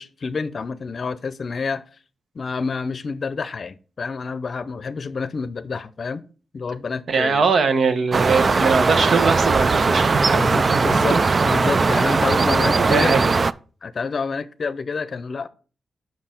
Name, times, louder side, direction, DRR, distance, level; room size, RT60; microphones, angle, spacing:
voice 1, 0.0-1.8 2.3-6.2 6.5-7.5 10.3-11.2 11.4-13.2 13.8-15.5, left 4 dB, 55° left, 0.6 m, -28 dB
voice 2, 7.1-10.8 11.1-11.2 12.6-13.3, right 4 dB, 65° right, 1.0 m, -21 dB
sound 1, 8.1-13.5, right 4 dB, 40° right, 0.3 m, -19 dB
7.5 x 5.9 x 4.4 m
wide cardioid pair, 100°, 0 cm